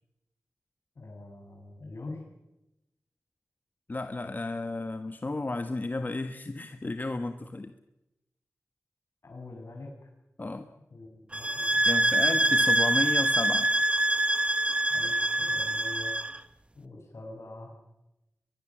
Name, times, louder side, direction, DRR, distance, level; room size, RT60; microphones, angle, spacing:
voice 1, 1.0-2.3 9.2-9.9 10.9-12.3 14.9-16.2 16.8-17.7, left 2 dB, 65° left, 2 dB, 8.0 m, -44 dB
voice 2, 3.9-7.7 10.4-10.7 11.8-13.7, left 2 dB, 35° left, 9 dB, 1.4 m, -33 dB
sound 1, 11.3-16.4, right 1 dB, 20° right, 1.2 m, -25 dB
23.5 x 21.5 x 7.7 m, 0.92 s
wide cardioid pair, 80°, 5 cm